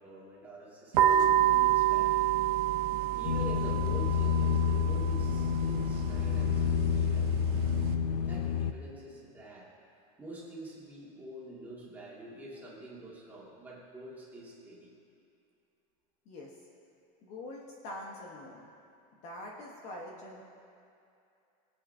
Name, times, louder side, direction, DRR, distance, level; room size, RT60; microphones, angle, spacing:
voice 1, 0.0-2.2 3.1-7.6 8.3-9.7 10.2-14.9, right 1 dB, 10° right, -7 dB, 2.2 m, -46 dB
sound 1, 0.9-7.9, right 12 dB, 80° right, 0.9 m, -29 dB
sound 2, 3.2-8.7, left 7 dB, 80° left, 0.7 m, -29 dB
voice 2, 17.2-18.7 19.2-20.4, left 1 dB, 35° left, -1 dB, 1.2 m, -44 dB
22.5 x 8.6 x 2.8 m, 2.6 s
supercardioid pair, 175°, 19 cm